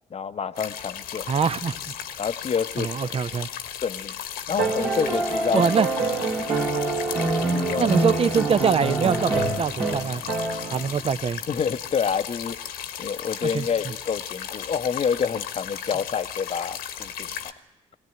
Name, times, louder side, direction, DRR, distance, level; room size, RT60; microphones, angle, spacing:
voice 1, 0.1-1.3 2.2-3.1 3.8-4.2 4.5-5.6 6.3-6.6 7.5-7.9 11.5-12.6 13.0-17.3, left 6 dB, 40° left, 0.8 m, -28 dB
sound 1, 0.6-17.5, left 9 dB, 70° left, 1.3 m, -36 dB
voice 2, 1.3-1.8 2.8-3.5 5.5-5.9 7.8-10.2 10.7-11.4 13.5-13.6, right 6 dB, 35° right, 0.6 m, -23 dB
sound 2, 4.6-11.0 12.5-12.6, right 2 dB, 65° right, 2.8 m, -26 dB
22.5 x 17.0 x 9.2 m
hypercardioid pair, 45°, 16 cm